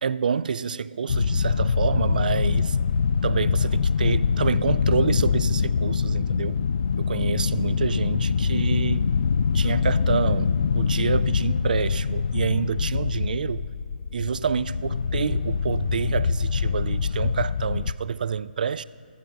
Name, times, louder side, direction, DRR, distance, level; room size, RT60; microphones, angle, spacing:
voice 1, 0.0-2.8 3.2-6.6 7.0-9.1 9.5-13.6 14.1-18.8, right 6 dB, 55° right, 0.4 m, -28 dB
sound 1, 1.1-17.9, left 5 dB, 60° left, 0.4 m, -24 dB
14.5 x 14.5 x 3.8 m
figure-of-eight pair, 140°, 5 cm